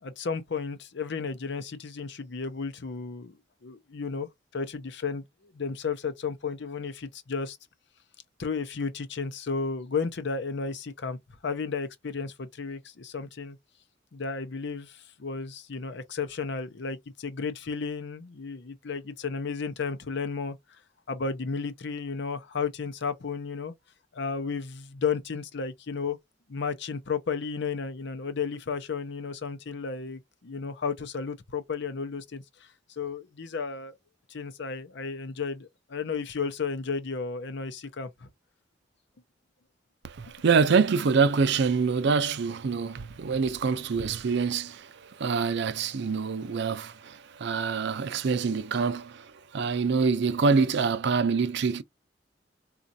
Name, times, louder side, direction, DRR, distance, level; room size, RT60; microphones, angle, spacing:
voice 1, 0.0-7.6 8.4-13.6 14.1-20.6 21.1-23.7 24.1-26.2 26.5-32.4 32.9-33.9 34.3-38.3, left 5 dB, 65° left, 0.6 m, -33 dB
voice 2, 40.0-51.8, right 5 dB, 65° right, 0.5 m, -26 dB
4.1 x 2.4 x 2.6 m
head